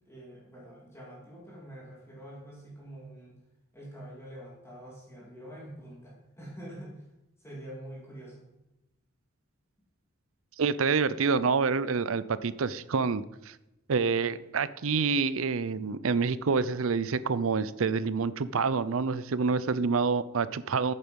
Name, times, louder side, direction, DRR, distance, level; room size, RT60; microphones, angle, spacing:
voice 1, 0.1-3.4 3.7-7.0 7.4-8.5, right 1 dB, 10° left, -5 dB, 2.8 m, -46 dB
voice 2, 10.6-13.5 13.9-20.9, right 5 dB, 70° right, 16 dB, 0.5 m, -27 dB
10.5 x 9.0 x 5.3 m, 0.93 s
head